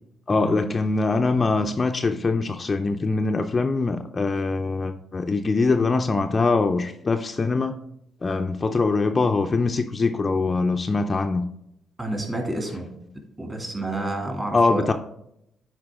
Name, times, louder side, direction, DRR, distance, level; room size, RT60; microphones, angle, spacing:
voice 1, 0.3-7.8 8.2-11.4 14.5-14.9, left 3 dB, 30° left, 6 dB, 0.4 m, -23 dB
voice 2, 12.0-12.9 13.4-14.9, right 2 dB, 20° right, 1 dB, 2.5 m, -29 dB
9.6 x 4.5 x 3.6 m, 0.79 s
cardioid pair, 90°, 0 cm